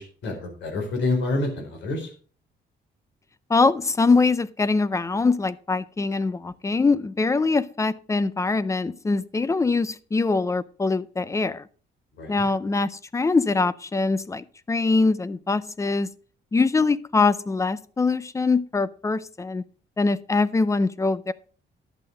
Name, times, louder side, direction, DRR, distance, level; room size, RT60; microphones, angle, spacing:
voice 1, 0.0-2.1 12.2-12.4, left 2 dB, 85° left, 4.3 m, -28 dB
voice 2, 3.5-11.6 12.3-16.1 16.5-19.6 20.0-21.3, left 3 dB, 15° left, 0.5 m, -23 dB
11.0 x 7.7 x 5.0 m
cardioid pair, 145°, 19 cm